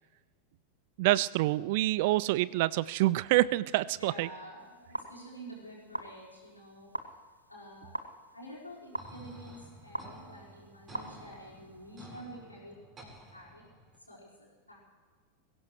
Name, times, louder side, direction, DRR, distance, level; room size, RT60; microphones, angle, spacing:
voice 1, 1.0-4.3, right 17 dB, 50° right, 21 dB, 0.4 m, -27 dB
voice 2, 4.0-7.1 7.5-7.9 8.3-13.6 14.1-14.8, right 1 dB, 85° left, -4 dB, 4.9 m, -49 dB
sound 1, 4.6-12.1, right 1 dB, 85° right, 0.9 m, -45 dB
sound 2, 9.0-14.0, right 1 dB, 20° right, 4.3 m, -52 dB
22.5 x 16.0 x 3.2 m, 1.5 s
figure-of-eight pair, 90°, 0 cm